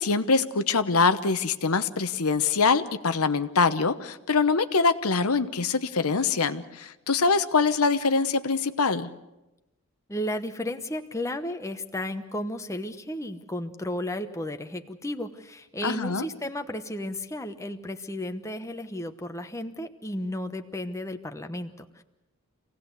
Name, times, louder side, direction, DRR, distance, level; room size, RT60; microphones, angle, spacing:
voice 1, 0.0-9.1 15.8-16.2, left 4 dB, 80° left, 10 dB, 1.0 m, -24 dB
voice 2, 10.1-22.0, left 1 dB, 15° left, 7 dB, 1.0 m, -33 dB
26.0 x 17.5 x 8.1 m, 0.97 s
head